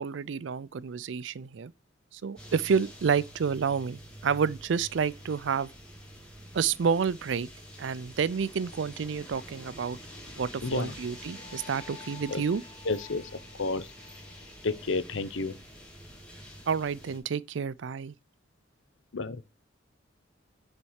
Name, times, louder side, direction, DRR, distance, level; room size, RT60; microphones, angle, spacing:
voice 1, 0.0-1.7 2.1-5.7 6.5-7.5 7.8-10.0 10.4-12.6 16.7-18.1, right 6 dB, 70° right, 0.4 m, -29 dB
sound 1, 2.4-17.2, equal, 5° left, 3.1 m, -47 dB
voice 2, 10.6-10.9 12.3-12.4 12.8-13.2 13.6-13.9 14.6-15.6 19.1-19.4, left 3 dB, 75° left, 0.8 m, -30 dB
Wind instrument woodwind instrument, 10.6-15.0, left 7 dB, 30° left, 1.6 m, -53 dB
7.1 x 4.4 x 6.3 m
head